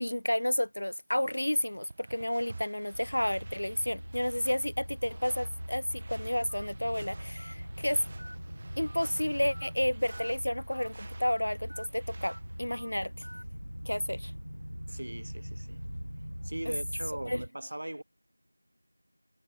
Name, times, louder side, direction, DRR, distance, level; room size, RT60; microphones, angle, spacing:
voice 1, 0.0-8.0 8.8-13.3 13.9-14.3 16.7-16.8 17.3-17.4, left 1 dB, 35° left, 0.5 m, -31 dB
sound 1, 1.2-12.7, right 3 dB, 10° right, 1.2 m, -52 dB
sound 2, 2.9-17.5, equal, 80° right, 3.0 m, -42 dB
Telephone, 6.5-6.7 7.4-7.5 8.2-8.4 8.9-9.1 9.5-9.7 10.1-10.3 10.7-10.9 11.2-11.4 11.7-11.9 12.2-12.4 12.7-12.9 13.2-13.4, equal, 55° right, 2.7 m, -48 dB
voice 2, 14.9-15.8 16.4-18.0, right 1 dB, 25° right, 0.8 m, -39 dB
figure-of-eight pair, 180°, 0 cm